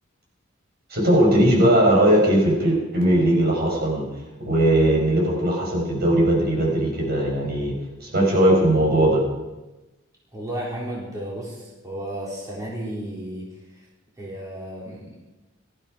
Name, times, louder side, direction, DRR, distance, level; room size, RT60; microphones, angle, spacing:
voice 1, 0.9-4.1 4.4-9.2, right 1 dB, 50° right, 0 dB, 4.9 m, -19 dB
voice 2, 10.3-13.5 14.2-15.3, right 1 dB, 15° right, -5 dB, 4.2 m, -33 dB
18.5 x 14.0 x 5.1 m, 1.1 s
head